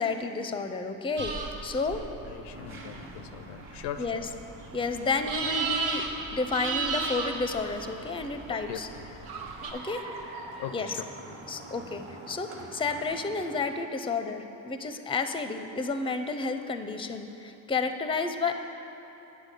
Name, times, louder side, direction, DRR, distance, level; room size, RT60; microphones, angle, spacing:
voice 1, 0.0-1.4 1.6-2.0 4.0-4.3 4.7-6.1 6.3-8.9 9.7-10.0 10.7-10.9 11.5-18.6, left 4 dB, 10° left, 8 dB, 0.5 m, -31 dB
sound 1, 1.2-9.7, right 4 dB, 75° right, 1.1 m, -35 dB
voice 2, 1.9-4.3 8.5-9.7 10.1-10.2 10.5-11.4, left 10 dB, 80° left, 10 dB, 0.5 m, -41 dB
sound 2, 2.5-13.7, right 2 dB, 30° right, 1.3 m, -48 dB
Car, 2.5-11.9, right 3 dB, 55° right, 0.9 m, -48 dB
8.3 x 4.8 x 6.5 m, 2.9 s
hypercardioid pair, 65°, 43 cm